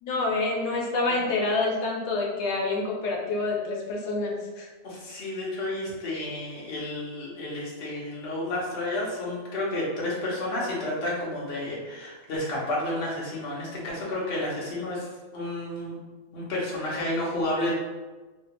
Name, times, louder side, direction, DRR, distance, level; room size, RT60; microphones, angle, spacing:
voice 1, 0.0-4.7, left 3 dB, 90° left, -1 dB, 1.2 m, -27 dB
voice 2, 4.8-15.9 16.3-17.7, left 1 dB, 50° left, -5 dB, 1.0 m, -31 dB
3.2 x 2.3 x 2.9 m, 1.3 s
omnidirectional pair, 1.7 m